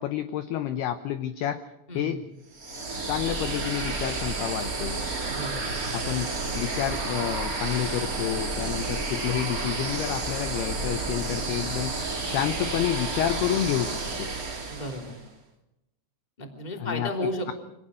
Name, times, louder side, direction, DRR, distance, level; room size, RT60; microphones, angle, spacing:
voice 1, 0.0-1.6 1.9-2.2 3.0-5.0 5.9-14.3 16.8-17.1, left 11 dB, 80° left, 10 dB, 2.3 m, -29 dB
voice 2, 1.9-2.2 5.3-5.8 14.7-15.2 16.4-17.5, left 1 dB, 10° left, 3 dB, 2.2 m, -33 dB
sound 1, 2.5-15.2, right 3 dB, 30° right, 1.9 m, -31 dB
25.5 x 19.0 x 6.4 m, 0.91 s
omnidirectional pair, 5.8 m